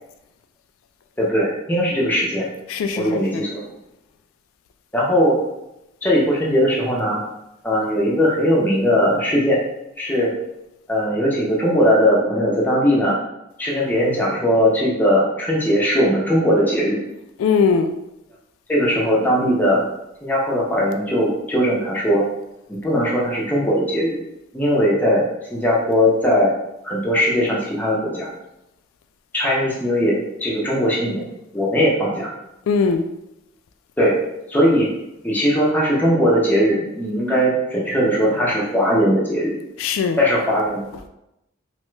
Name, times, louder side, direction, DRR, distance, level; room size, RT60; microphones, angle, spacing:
voice 1, 1.2-2.5 3.0-3.6 4.9-5.4 6.0-7.2 7.6-9.6 10.0-10.4 10.9-13.2 13.6-17.0 18.7-19.9 20.2-22.3 22.7-24.2 24.5-25.2 25.5-26.5 26.8-28.3 29.3-31.3 31.5-32.3 34.0-34.2 34.5-34.9 35.2-39.5 40.2-40.8, equal, 10° left, -5 dB, 0.6 m, -19 dB
voice 2, 2.7-3.4 17.4-17.9 32.7-33.1 39.8-40.2 40.9-41.0, left 5 dB, 90° left, 7 dB, 0.3 m, -20 dB
3.0 x 2.2 x 3.1 m, 0.88 s
head